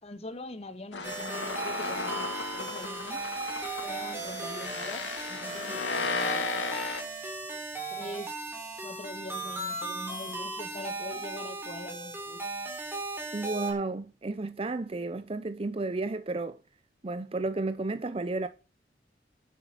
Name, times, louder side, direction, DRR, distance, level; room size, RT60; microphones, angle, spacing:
voice 1, 0.0-3.2 3.8-6.5 7.9-8.4 8.8-12.4, left 2 dB, 35° left, 1.4 m, -42 dB
sound 1, 0.9-7.0, left 4 dB, 85° left, 2.2 m, -34 dB
sound 2, 1.0-13.7, right 3 dB, 15° right, 3.9 m, -37 dB
voice 2, 13.3-16.6 17.0-18.5, right 3 dB, 35° right, 0.6 m, -32 dB
10.5 x 8.1 x 7.5 m
head